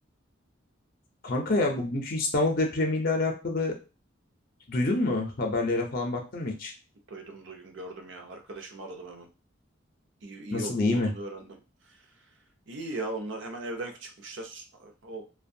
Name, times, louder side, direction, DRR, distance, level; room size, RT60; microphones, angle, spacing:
voice 1, 1.2-3.7 4.7-6.7 10.5-11.1, left 2 dB, 45° left, 2 dB, 0.5 m, -27 dB
voice 2, 7.1-9.3 10.2-11.6 12.7-15.3, right 2 dB, 65° right, 3 dB, 0.6 m, -39 dB
2.6 x 2.2 x 2.6 m, 0.31 s
head